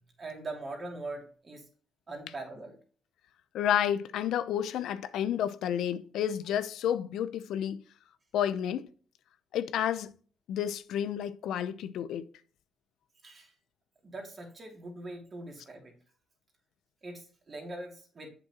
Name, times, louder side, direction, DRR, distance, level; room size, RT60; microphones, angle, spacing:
voice 1, 0.2-1.6 2.1-2.8 13.2-13.5 14.0-15.9 17.0-18.3, right 2 dB, 40° right, 2.8 m, -42 dB
voice 2, 3.5-7.8 8.3-8.9 9.5-10.1 10.5-12.2, left 10 dB, 80° left, 0.6 m, -30 dB
7.8 x 6.1 x 2.9 m
cardioid pair, 90°, 0 cm